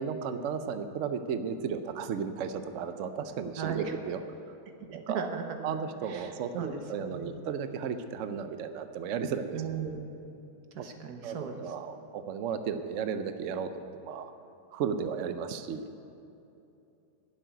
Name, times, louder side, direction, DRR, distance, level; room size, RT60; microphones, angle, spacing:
voice 1, 0.0-4.2 4.9-5.3 5.6-9.9 11.2-14.3 14.7-15.9, right 6 dB, 80° right, 9 dB, 0.6 m, -34 dB
voice 2, 3.5-3.9 4.9-5.6 6.1-7.3 9.5-10.5 10.7-11.6, right 6 dB, 60° right, 5 dB, 1.5 m, -37 dB
11.5 x 7.5 x 9.3 m, 2.8 s
omnidirectional pair, 2.1 m